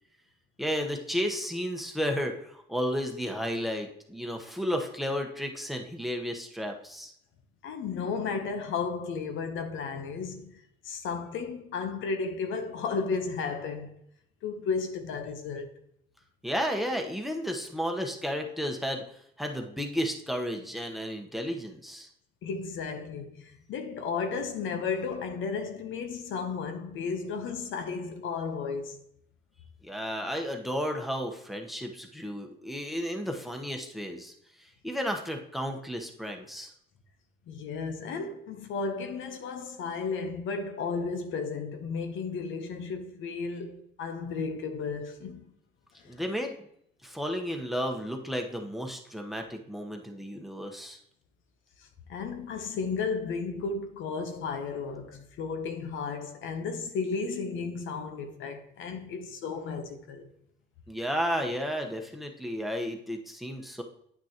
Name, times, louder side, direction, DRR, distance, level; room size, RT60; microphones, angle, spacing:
voice 1, 0.6-7.1 16.4-19.0 19.4-22.1 29.8-36.7 46.0-46.6 47.0-51.0 60.9-63.8, equal, ahead, 1.0 m, -33 dB
voice 2, 7.6-10.5 10.8-14.0 14.4-15.7 22.4-29.0 37.5-45.5 46.0-46.1 51.8-60.3, left 5 dB, 80° left, 0.9 m, -34 dB
9.3 x 6.0 x 2.9 m
cardioid pair, 90°, 20 cm